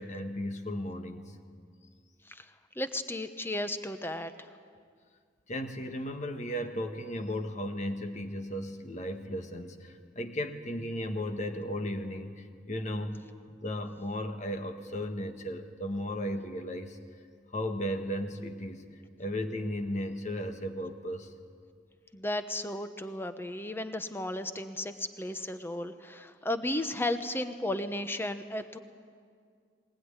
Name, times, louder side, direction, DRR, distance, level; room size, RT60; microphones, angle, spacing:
voice 1, 0.0-1.3 5.5-13.2 13.6-17.0 17.5-18.8 19.2-21.3, equal, 40° left, 6 dB, 1.6 m, -35 dB
voice 2, 2.7-4.5 22.1-28.8, left 1 dB, 10° left, 9 dB, 1.0 m, -34 dB
20.5 x 20.0 x 9.8 m, 2.1 s
head